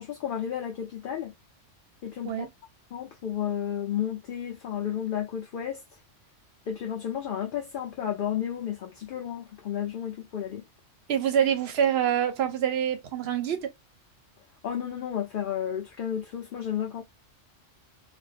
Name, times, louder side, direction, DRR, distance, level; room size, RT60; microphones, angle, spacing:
voice 1, 0.0-1.3 2.0-2.5 2.9-5.8 6.7-10.6 14.6-17.0, left 9 dB, 55° left, 0.6 m, -32 dB
voice 2, 11.1-13.7, right 9 dB, 65° right, 0.8 m, -26 dB
2.5 x 2.2 x 2.4 m
omnidirectional pair, 1.2 m